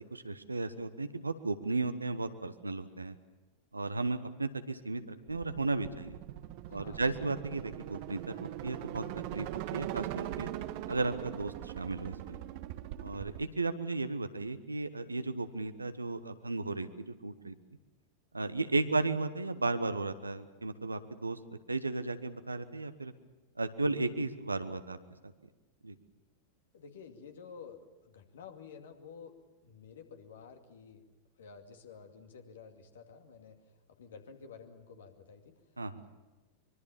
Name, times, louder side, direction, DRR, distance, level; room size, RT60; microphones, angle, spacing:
voice 1, 0.0-3.1 3.7-6.2 6.7-9.0 9.3-10.5 10.9-12.4 13.0-17.5 18.3-23.1 23.6-25.0 25.2-25.3 25.8-25.9 35.8-36.0, right 3 dB, 80° right, 11 dB, 1.2 m, -35 dB
sound 1, 5.3-13.4, right 13 dB, 45° right, 1.1 m, -41 dB
voice 2, 6.7-7.1 18.8-19.0 26.7-29.4 29.6-31.0 31.4-35.6, left 6 dB, 65° left, 5 dB, 2.5 m, -51 dB
24.0 x 23.0 x 7.3 m, 1.2 s
figure-of-eight pair, 90°, 0 cm